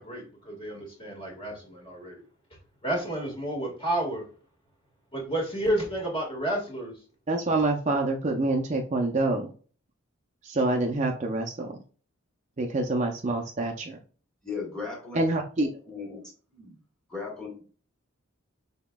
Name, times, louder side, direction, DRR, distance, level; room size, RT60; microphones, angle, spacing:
voice 1, 0.0-2.2 2.8-4.2 5.1-7.0, right 1 dB, 25° left, 1.6 m, -31 dB
voice 2, 7.3-9.5 10.4-11.7 12.6-14.0 15.2-15.7, right 2 dB, 35° right, 0.5 m, -26 dB
voice 3, 14.4-15.2 15.8-16.2 16.5-16.8 17.1-17.6, left 5 dB, 5° left, 1.6 m, -36 dB
5.8 x 3.5 x 2.2 m
head